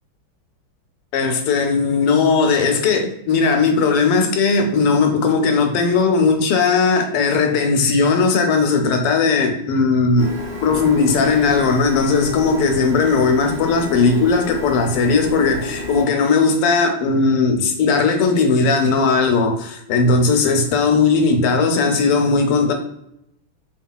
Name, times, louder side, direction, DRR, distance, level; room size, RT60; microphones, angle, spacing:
voice 1, 1.1-10.3 10.6-22.7, left 4 dB, 85° left, 1.6 m, -17 dB
Printer, 10.2-16.1, equal, 45° right, 1.5 m, -31 dB
4.1 x 3.8 x 2.2 m
omnidirectional pair, 2.4 m